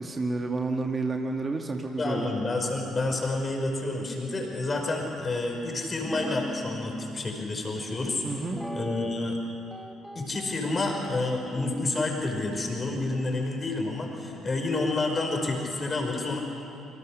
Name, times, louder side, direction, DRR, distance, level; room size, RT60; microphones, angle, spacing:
voice 1, 0.0-2.3 8.2-8.6, right 3 dB, 30° right, 3 dB, 2.0 m, -30 dB
voice 2, 2.0-8.2 8.7-9.4 10.1-16.4, left 2 dB, 30° left, 2 dB, 5.7 m, -29 dB
Guitar, 6.0-7.2 8.5-9.4 9.7-10.9 11.5-14.9, equal, ahead, 2.3 m, -39 dB
26.5 x 25.0 x 6.6 m, 2.9 s
figure-of-eight pair, 45°, 0 cm